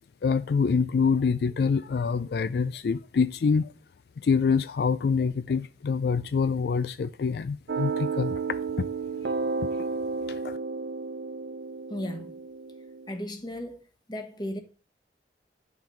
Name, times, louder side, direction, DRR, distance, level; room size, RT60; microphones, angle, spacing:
voice 1, 0.2-3.7 4.2-8.4 8.8-8.9 10.3-10.6, left 5 dB, 60° left, 0.3 m, -25 dB
sound 1, 7.7-13.2, right 4 dB, 70° right, 0.5 m, -32 dB
voice 2, 11.9-12.3 13.1-13.8 14.1-14.6, left 1 dB, 25° left, 1.2 m, -35 dB
10.5 x 5.8 x 4.5 m
head